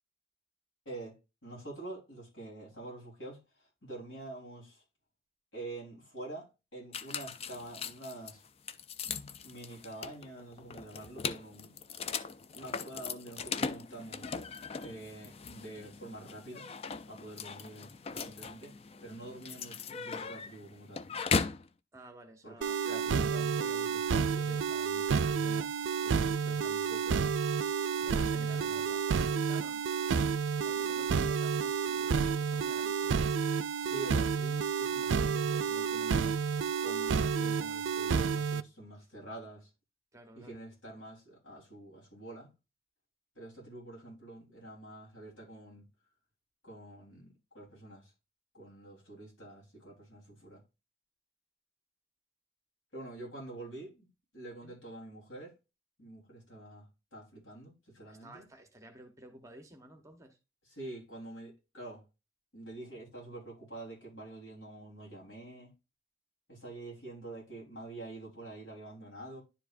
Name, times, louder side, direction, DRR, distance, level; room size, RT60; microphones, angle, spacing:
voice 1, 0.9-1.2 1.4-4.8 5.5-8.4 9.4-11.7 12.5-14.3 14.8-16.7 17.1-18.7 19.0-21.0 22.4-25.7 26.0-27.2 28.0-29.0 33.8-36.5 36.8-39.7 40.4-42.5 43.4-45.9 46.6-48.1 48.5-50.6 52.9-54.1 54.3-55.5 56.0-58.5 60.7-62.0 62.5-65.7 66.5-69.4, right 2 dB, 85° left, 3.9 m, -47 dB
sound 1, 6.9-21.7, left 5 dB, 30° left, 0.3 m, -39 dB
voice 2, 21.9-22.8 28.0-29.8 30.1-33.3 40.1-40.6 54.6-54.7 58.0-60.4, right 1 dB, 15° right, 1.0 m, -53 dB
sound 2, 22.6-38.6, right 6 dB, 75° right, 0.4 m, -30 dB
10.5 x 4.9 x 2.6 m
head